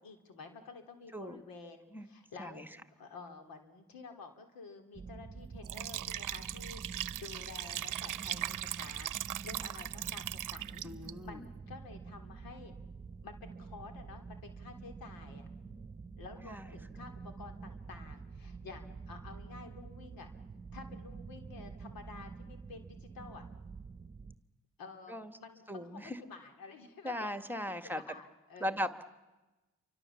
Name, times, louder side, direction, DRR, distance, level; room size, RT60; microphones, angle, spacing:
voice 1, 0.0-2.6 3.0-9.1 9.4-12.7 13.2-15.5 16.2-20.3 20.7-23.5 24.8-27.3 27.8-28.8, left 4 dB, 75° left, 6 dB, 3.2 m, -51 dB
sound 1, 4.9-24.3, right 4 dB, 25° right, 1.2 m, -48 dB
Liquid, 5.6-11.1, right 13 dB, 60° right, 0.8 m, -39 dB
voice 2, 10.8-11.5 16.4-16.7 25.1-25.3 25.7-26.2 27.0-28.0 28.6-29.0, equal, 5° right, 9 dB, 1.9 m, -38 dB
29.5 x 24.5 x 7.2 m, 1.1 s
hypercardioid pair, 50°, 35 cm